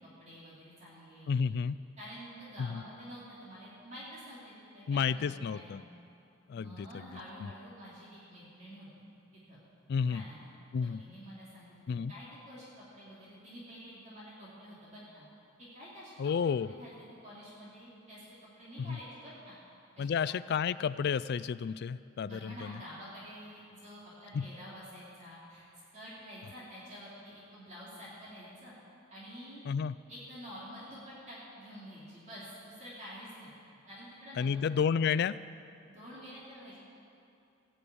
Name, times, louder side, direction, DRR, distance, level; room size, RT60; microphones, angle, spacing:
voice 1, 0.2-1.5 2.0-5.8 6.5-8.9 9.3-9.6 10.1-10.5 11.0-15.2 15.6-16.1 16.4-16.9 17.2-18.3 18.6-19.6 19.9-20.4 22.2-25.6 25.9-28.7 29.1-29.6 30.1-33.5 33.9-34.5 35.9-36.8, equal, 35° right, -8 dB, 3.0 m, -49 dB
voice 2, 1.3-1.8 2.6-2.8 4.9-5.8 6.5-7.5 9.9-10.2 10.7-11.0 11.9-12.1 16.2-16.7 18.8-19.0 20.0-22.8 24.3-24.4 29.7-30.0 34.4-35.4, left 6 dB, 55° left, 17 dB, 0.3 m, -31 dB
17.5 x 6.3 x 8.6 m, 2.6 s
head